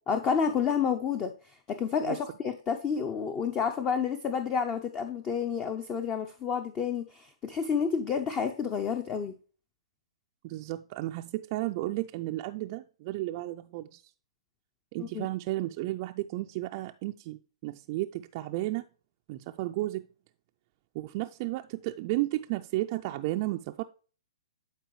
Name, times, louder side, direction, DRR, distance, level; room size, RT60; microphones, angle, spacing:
voice 1, 0.1-9.3 15.0-15.3, left 6 dB, 20° left, 0.6 m, -30 dB
voice 2, 10.4-14.0 14.9-18.8 19.3-20.0 20.9-23.8, right 17 dB, 40° right, 0.4 m, -33 dB
11.5 x 4.6 x 3.1 m
hypercardioid pair, 135°, 3 cm